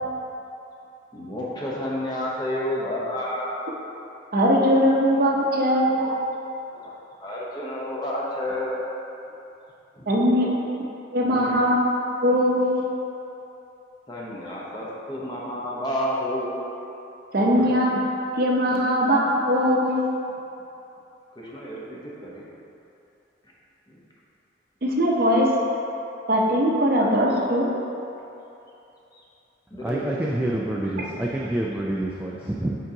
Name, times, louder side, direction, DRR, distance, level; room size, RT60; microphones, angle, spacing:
voice 1, 1.1-3.6 6.7-6.9 7.2-8.8 9.9-10.5 11.3-11.6 14.1-16.6 17.5-17.7 21.4-22.5 23.9-24.0 29.1-29.2 29.7-30.5, left 1 dB, 20° left, -5 dB, 0.8 m, -31 dB
voice 2, 4.3-6.1 10.1-10.6 11.1-11.8 12.2-12.9 17.3-18.0 18.4-20.1 24.8-25.5 26.3-27.7, equal, 50° right, -2 dB, 0.7 m, -20 dB
voice 3, 29.7-32.8, right 1 dB, 10° right, -5 dB, 0.3 m, -27 dB
9.0 x 3.8 x 2.8 m, 2.8 s
head